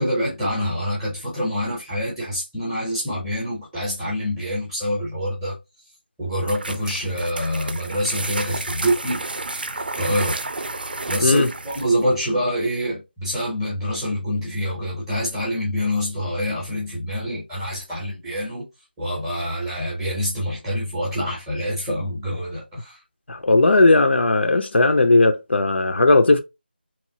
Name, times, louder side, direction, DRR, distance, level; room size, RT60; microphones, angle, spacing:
voice 1, 0.0-5.5 6.2-9.2 10.0-10.4 11.1-18.6 19.0-23.0, equal, 5° right, 0.6 m, -26 dB
sound 1, 6.4-12.0, right 2 dB, 60° right, 0.5 m, -31 dB
voice 2, 23.3-26.4, left 2 dB, 85° left, 0.5 m, -16 dB
2.9 x 2.3 x 2.7 m
figure-of-eight pair, 175°, 6 cm